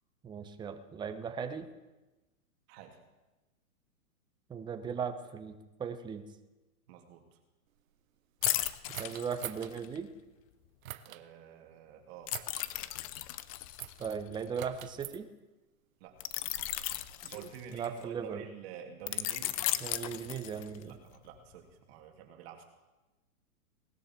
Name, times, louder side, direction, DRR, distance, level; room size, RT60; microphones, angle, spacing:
voice 1, 0.2-1.7 4.5-6.2 9.0-10.1 14.0-15.3 17.7-18.4 19.8-20.9, right 6 dB, 10° right, 7 dB, 0.9 m, -38 dB
voice 2, 2.7-3.0 6.9-7.2 11.0-12.3 16.0-16.2 17.3-19.6 20.8-22.6, right 8 dB, 45° right, 3 dB, 2.8 m, -49 dB
sound 1, 8.4-10.0 12.3-15.0 16.2-18.0 19.1-20.9 21.3-21.5, left 15 dB, 25° left, 0.4 m, -36 dB
sound 2, 8.4-9.7 10.8-11.2 12.3-12.7 13.8-14.1 14.6-15.2 16.1-17.5, right 12 dB, 70° right, 1.0 m, -45 dB
19.0 x 13.0 x 4.6 m, 1.1 s
hypercardioid pair, 135°, 43 cm